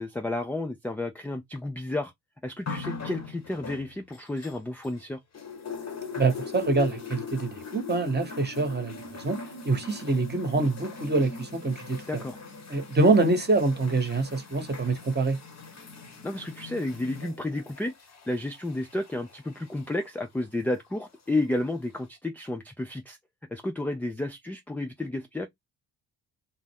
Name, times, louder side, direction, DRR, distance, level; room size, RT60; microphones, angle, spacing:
voice 1, 0.0-2.1 2.4-5.2 12.1-12.4 16.2-17.9 18.3-23.2 23.5-25.5, left 2 dB, 5° left, 0.3 m, -31 dB
sound 1, 2.7-5.0 5.3-20.1 21.0-21.1, left 5 dB, 30° left, 0.9 m, -41 dB
voice 2, 6.2-9.4 9.6-12.2 12.7-15.4, right 3 dB, 20° right, 1.0 m, -25 dB
2.0 x 2.0 x 3.4 m
hypercardioid pair, 50°, 50 cm